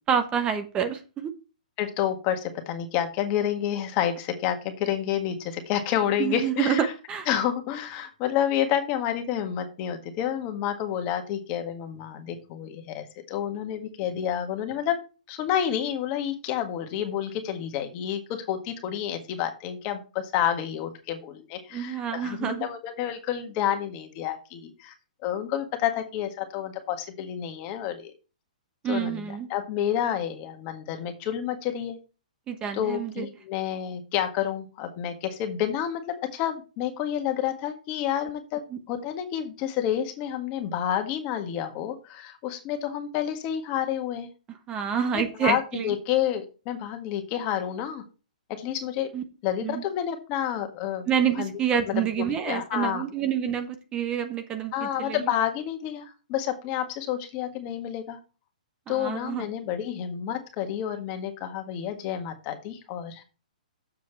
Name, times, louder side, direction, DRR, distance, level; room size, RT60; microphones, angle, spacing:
voice 1, 0.0-1.3 6.2-7.3 21.7-22.7 28.8-29.5 32.5-33.3 38.7-38.8 44.7-45.9 49.1-49.2 49.6-49.8 51.1-55.2 58.9-59.4, right 8 dB, 20° right, 8 dB, 1.0 m, -28 dB
voice 2, 1.8-6.9 7.3-15.0 15.3-24.9 25.2-28.1 28.8-32.0 32.7-38.6 38.9-44.3 45.1-48.0 48.6-49.1 49.4-51.1 51.3-51.5 51.9-53.0 54.7-58.2 58.9-63.2, left 10 dB, 35° left, 6 dB, 1.6 m, -29 dB
7.2 x 6.2 x 4.6 m, 0.32 s
hypercardioid pair, 140°, 4 cm